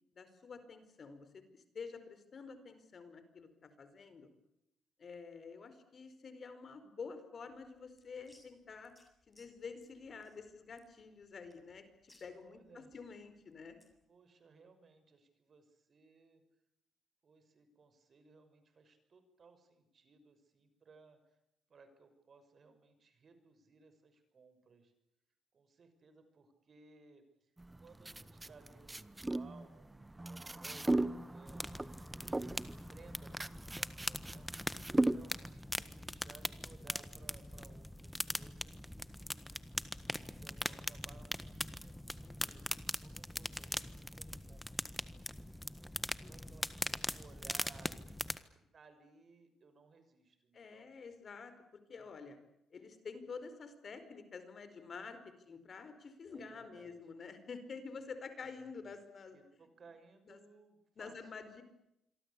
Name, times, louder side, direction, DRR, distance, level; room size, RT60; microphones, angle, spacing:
voice 1, 0.1-4.3 5.0-8.9 9.3-13.8 42.2-42.7 46.2-46.6 50.5-52.4 52.7-55.2 55.4-59.4 60.3-60.4 61.0-61.6, left 5 dB, 45° left, 10 dB, 4.8 m, -49 dB
sound 1, 7.5-14.0, left 2 dB, 20° left, 7.3 m, -69 dB
voice 2, 12.3-12.9 14.1-16.4 17.2-21.4 21.7-24.9 25.5-34.5 34.9-39.6 40.3-48.2 48.7-51.0 56.3-57.0 58.4-58.9 59.3-61.1, right 4 dB, 45° right, 9 dB, 6.2 m, -62 dB
sound 2, 27.6-35.5, right 2 dB, 15° right, 1.0 m, -37 dB
sound 3, 31.5-48.4, left 1 dB, 5° left, 1.5 m, -42 dB
27.0 x 23.5 x 8.5 m, 0.84 s
cardioid pair, 90°, 0 cm